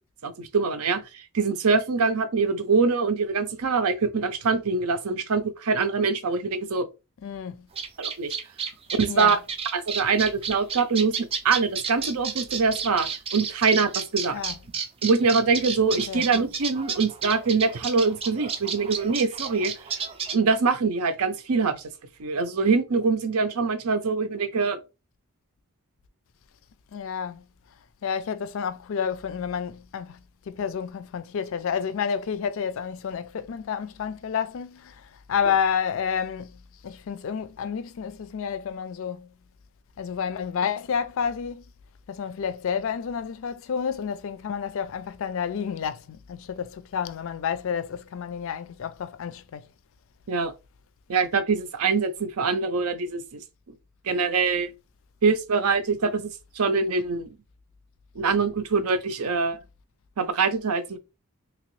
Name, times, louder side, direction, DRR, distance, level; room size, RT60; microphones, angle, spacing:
voice 1, 0.2-1.0 1.3-6.9 8.0-8.3 9.0-9.4 9.7-11.1 11.4-14.4 15.0-19.7 20.3-21.8 22.2-24.8 50.3-50.5 51.1-53.4 54.1-54.7 55.2-56.3 56.6-57.3 58.2-59.6 60.2-61.0, right 4 dB, 80° right, 0.6 m, -24 dB
voice 2, 7.2-7.7 9.1-9.4 14.3-14.6 15.9-16.2 26.9-27.5 28.0-39.3 40.0-41.6 42.1-49.7, left 7 dB, 60° left, 0.3 m, -30 dB
sound 1, 7.7-20.3, right 6 dB, 25° right, 0.4 m, -31 dB
3.0 x 2.9 x 3.0 m
head